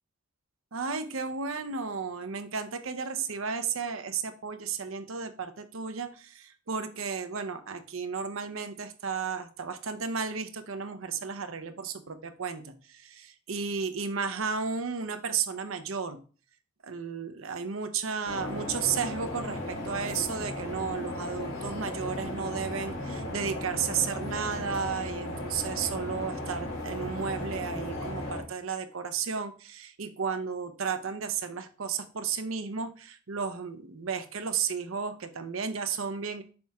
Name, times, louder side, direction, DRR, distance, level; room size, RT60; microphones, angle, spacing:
voice 1, 0.7-16.2 16.8-36.4, right 6 dB, 75° right, 8 dB, 0.7 m, -33 dB
sound 1, 18.2-28.4, left 1 dB, 80° left, 2.5 m, -36 dB
6.1 x 3.6 x 4.2 m, 0.38 s
head